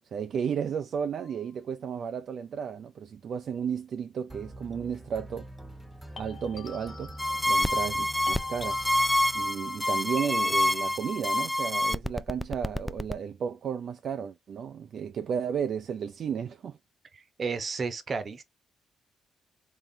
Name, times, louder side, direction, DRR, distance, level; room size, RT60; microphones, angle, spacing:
voice 1, 0.1-5.5 6.2-8.8 9.3-16.8, right 7 dB, 60° right, 0.4 m, -33 dB
sound 1, 1.2-1.5 6.2-8.0 8.3-11.1, left 5 dB, 40° left, 0.9 m, -48 dB
sound 2, 4.3-10.0, right 1 dB, 10° right, 1.0 m, -45 dB
sound 3, 7.2-13.1, left 1 dB, 5° left, 0.4 m, -27 dB
voice 2, 17.4-18.4, right 5 dB, 40° right, 0.9 m, -32 dB
3.8 x 3.1 x 2.7 m
cardioid pair, 90°, 0 cm